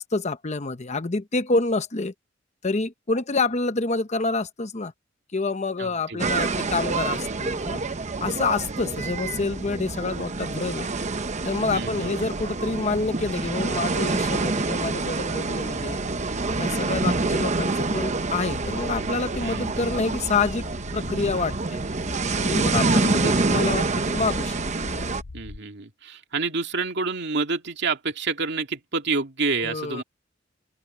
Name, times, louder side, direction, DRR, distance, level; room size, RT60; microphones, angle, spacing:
voice 1, 0.0-2.1 2.6-4.9 5.3-7.8 8.2-10.9 11.4-16.0 16.5-20.7 20.9-21.8 22.4-24.6 29.6-30.0, left 3 dB, 35° left, 1.0 m, -27 dB
voice 2, 5.8-6.5 11.7-12.4 19.4-19.9 22.9-23.7 25.3-30.0, right 4 dB, 60° right, 2.4 m, -29 dB
sound 1, 6.2-25.2, right 3 dB, 40° right, 0.9 m, -27 dB
sound 2, 15.7-25.6, left 3 dB, 80° left, 0.8 m, -40 dB
open air
head